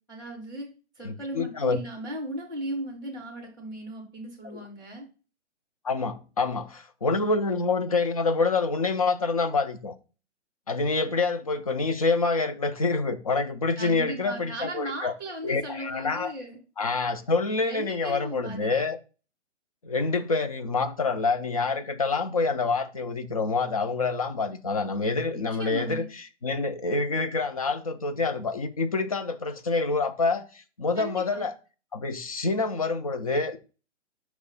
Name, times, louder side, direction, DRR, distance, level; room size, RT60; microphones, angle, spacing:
voice 1, 0.1-0.7 0.9-5.1 13.8-16.6 17.6-18.7 25.3-26.1 30.9-31.4, right 1 dB, 10° left, 0.8 m, -37 dB
voice 2, 1.0-1.8 4.5-4.7 5.8-9.9 10.7-15.1 15.4-16.3 16.8-19.0 19.8-26.0 26.4-31.5 31.9-33.6, left 3 dB, 30° left, 0.4 m, -27 dB
5.8 x 3.1 x 5.2 m
hypercardioid pair, 155°, 36 cm